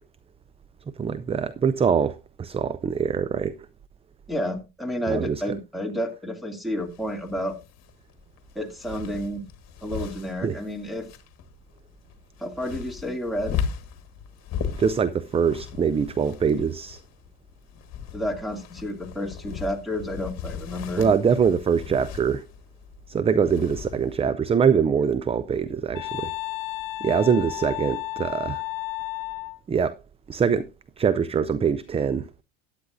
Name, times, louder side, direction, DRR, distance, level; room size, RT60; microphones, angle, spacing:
voice 1, 1.0-3.6 5.1-5.4 10.4-10.6 14.8-17.0 21.0-22.4 23.1-26.3 27.0-28.6 29.7-30.0 30.3-30.7 31.0-32.3, right 6 dB, 15° right, 0.4 m, -23 dB
voice 2, 4.3-7.6 8.5-9.4 9.8-11.1 12.4-13.6 18.1-21.1, equal, ahead, 2.5 m, -30 dB
sound 1, 6.8-24.3, left 8 dB, 45° left, 1.7 m, -37 dB
Wind instrument woodwind instrument, 25.9-29.6, left 18 dB, 65° left, 0.9 m, -32 dB
14.0 x 9.8 x 2.6 m
supercardioid pair, 90°, 35 cm